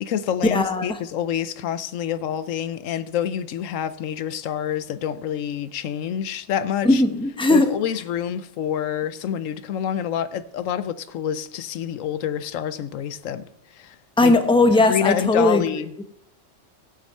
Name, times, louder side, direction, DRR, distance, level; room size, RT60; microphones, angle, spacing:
voice 1, 0.0-7.0 7.5-13.4 13.7-14.0 14.2-14.4 14.8-16.0, left 9 dB, 85° left, 1.1 m, -27 dB
voice 2, 0.5-0.9 6.8-7.7 14.2-15.6, left 2 dB, 5° left, 0.8 m, -18 dB
16.5 x 6.2 x 5.5 m
omnidirectional pair, 1.3 m